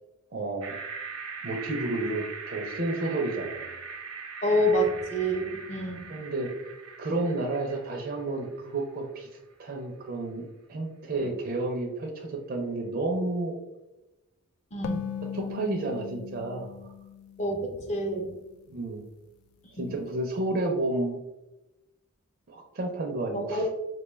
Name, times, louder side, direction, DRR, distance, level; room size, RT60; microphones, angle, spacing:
voice 1, 0.3-0.8 1.4-3.7 6.1-6.5 7.0-9.3 9.6-13.5 15.3-16.7 18.7-19.0 19.8-21.2 22.5-23.6, right 2 dB, 45° right, 1 dB, 0.5 m, -31 dB
sound 1, 0.6-8.8, right 5 dB, 85° right, 0.7 m, -41 dB
voice 2, 4.4-6.1 11.2-11.3 14.7-15.1 17.4-18.4 19.8-19.9 23.3-23.7, equal, 30° left, 1 dB, 0.6 m, -28 dB
sound 2, 14.8-18.3, left 8 dB, 80° left, 0.3 m, -38 dB
4.4 x 2.2 x 3.1 m, 0.99 s
head